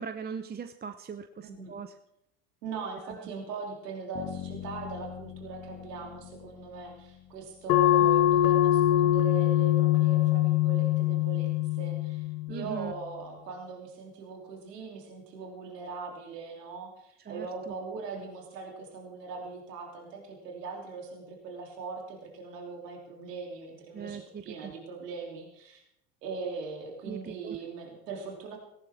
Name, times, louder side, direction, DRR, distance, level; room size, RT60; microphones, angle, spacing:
voice 1, 0.0-1.9 3.1-3.2 12.5-12.9 17.3-17.7 23.9-24.7 27.0-27.6, right 6 dB, 20° right, 9 dB, 0.7 m, -40 dB
voice 2, 1.4-1.7 2.6-25.8 26.2-28.6, right 4 dB, 80° right, 0 dB, 3.2 m, -40 dB
Bass guitar, 4.2-8.1, left 10 dB, 35° left, 1.9 m, -43 dB
sound 1, 7.7-12.8, left 13 dB, 70° left, 0.9 m, -23 dB
18.0 x 16.0 x 3.6 m, 0.79 s
hypercardioid pair, 75°, 48 cm